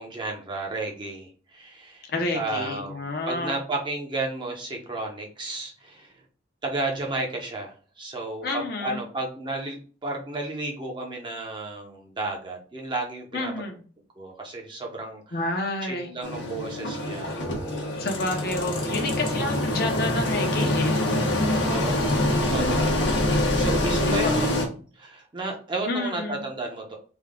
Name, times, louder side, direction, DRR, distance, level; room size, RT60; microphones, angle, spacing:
voice 1, 0.0-2.0 2.3-6.1 6.6-13.5 14.2-15.3 15.8-17.9 21.7-24.7 25.0-27.0, right 2 dB, 25° right, 0 dB, 0.7 m, -33 dB
voice 2, 2.1-3.6 8.4-9.0 13.3-13.8 15.3-16.1 17.9-21.0 24.1-24.4 25.9-26.5, left 2 dB, 55° left, 3 dB, 0.8 m, -29 dB
Engine, 16.2-24.7, left 1 dB, 85° left, 0.9 m, -25 dB
3.5 x 2.3 x 3.6 m, 0.39 s
head